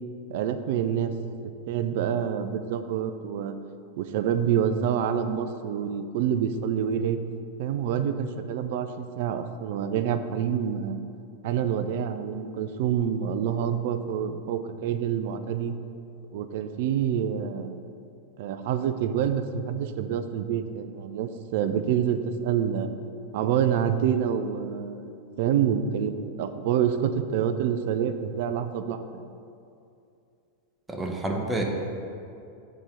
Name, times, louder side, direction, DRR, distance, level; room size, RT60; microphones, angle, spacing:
voice 1, 0.3-1.1 1.7-3.5 4.0-7.2 7.6-11.0 11.4-15.7 16.3-17.8 18.4-22.9 23.3-25.1 25.4-29.3, right 8 dB, 50° right, 9 dB, 0.4 m, -27 dB
voice 2, 30.9-31.6, right 2 dB, 10° right, 1 dB, 0.9 m, -28 dB
7.4 x 4.3 x 5.0 m, 2.6 s
figure-of-eight pair, 90°, 0 cm